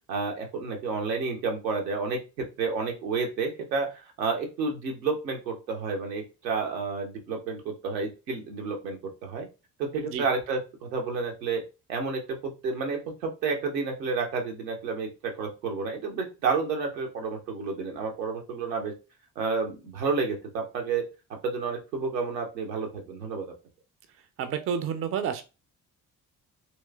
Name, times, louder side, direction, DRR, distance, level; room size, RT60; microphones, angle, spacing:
voice 1, 0.1-9.5 9.8-11.6 11.9-18.9 19.4-21.0 21.3-23.5, right 4 dB, 80° right, 2 dB, 0.8 m, -30 dB
voice 2, 24.4-25.4, right 7 dB, 30° right, 9 dB, 0.4 m, -30 dB
3.0 x 3.0 x 2.2 m, 0.29 s
figure-of-eight pair, 40°, 50 cm